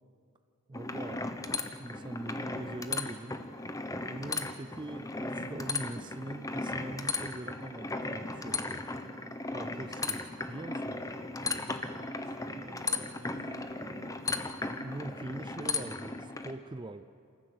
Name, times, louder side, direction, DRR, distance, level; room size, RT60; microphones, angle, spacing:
sound 1, 0.7-16.5, left 3 dB, 15° left, 0.9 m, -36 dB
voice 1, 0.7-1.2 1.8-3.4 4.1-8.8 9.5-10.2 10.5-11.0 14.8-17.0, right 2 dB, 20° right, 10 dB, 0.4 m, -42 dB
voice 2, 12.2-14.3, right 2 dB, 80° right, 8 dB, 1.5 m, -53 dB
27.0 x 14.0 x 8.3 m, 2.5 s
head